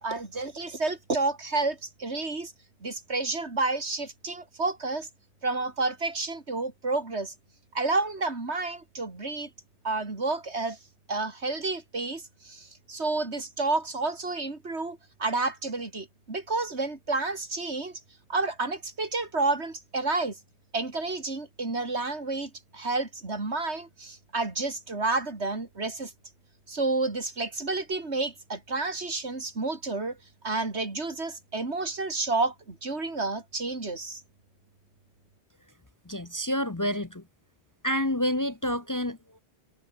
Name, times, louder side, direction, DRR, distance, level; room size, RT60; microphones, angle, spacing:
voice 1, 0.0-2.5 2.8-5.1 5.4-7.3 7.7-9.5 9.8-10.8 11.1-18.0 18.3-20.4 20.7-26.1 26.7-30.2 30.4-34.2, right 3 dB, 75° right, 3.5 m, -30 dB
voice 2, 36.0-37.2 37.8-39.4, equal, 20° left, 0.8 m, -29 dB
omnidirectional pair, 1.1 m